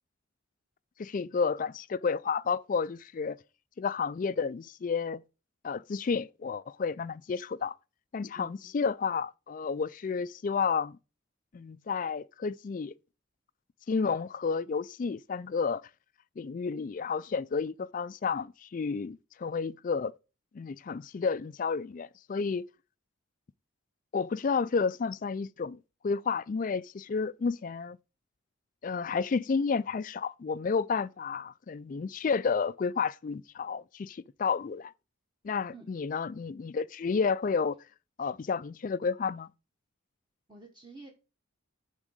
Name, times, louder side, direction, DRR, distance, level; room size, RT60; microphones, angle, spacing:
voice 1, 1.0-3.4 3.8-5.2 5.6-7.8 8.1-11.0 11.5-12.9 13.9-15.8 16.4-20.1 20.5-22.6 24.1-25.8 26.0-28.0 28.8-34.9 35.4-37.8 38.2-39.5, left 5 dB, 40° left, 0.3 m, -31 dB
voice 2, 8.3-8.7 35.7-35.9 40.5-41.1, right 2 dB, 20° right, 1.2 m, -49 dB
8.8 x 3.7 x 6.4 m
head